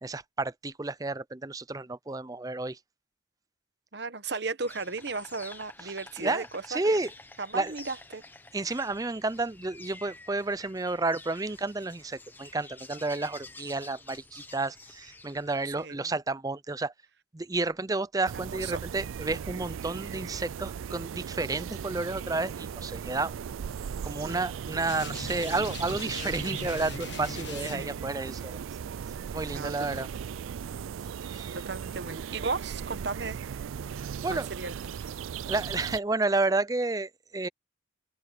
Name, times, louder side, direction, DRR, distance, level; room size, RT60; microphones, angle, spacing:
voice 1, 0.0-2.8 5.8-7.1 7.5-7.7 8.5-16.9 17.3-23.3 24.0-28.6 29.3-30.1 31.2-31.6 34.0-34.5 35.5-37.5, right 3 dB, 20° right, 0.5 m, -31 dB
voice 2, 3.9-7.0 7.4-8.2 15.8-16.1 18.4-18.8 24.2-24.4 27.7-28.0 29.5-30.2 31.5-33.4 34.3-35.1, right 4 dB, 55° right, 1.1 m, -36 dB
Insect, 4.6-15.8, left 2 dB, 10° left, 1.0 m, -49 dB
sound 1, 18.3-36.0, right 7 dB, 85° right, 0.4 m, -37 dB
sound 2, 24.9-28.1, left 4 dB, 60° left, 1.4 m, -40 dB
head